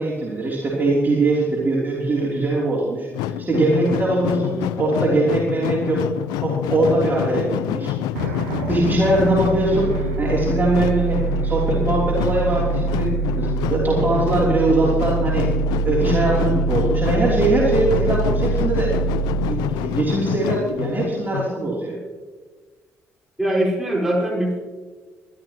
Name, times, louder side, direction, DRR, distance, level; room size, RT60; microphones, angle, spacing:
voice 1, 0.0-6.0 6.4-7.9 8.5-19.0 19.4-22.0, right 2 dB, 25° right, -4 dB, 3.3 m, -21 dB
sound 1, 3.1-21.5, left 13 dB, 65° left, 0.3 m, -27 dB
sound 2, 8.1-20.9, right 4 dB, 70° right, 0.8 m, -25 dB
voice 2, 23.4-24.6, right 1 dB, 5° right, -3 dB, 5.5 m, -21 dB
23.0 x 12.0 x 3.0 m, 1.4 s
figure-of-eight pair, 40°, 7 cm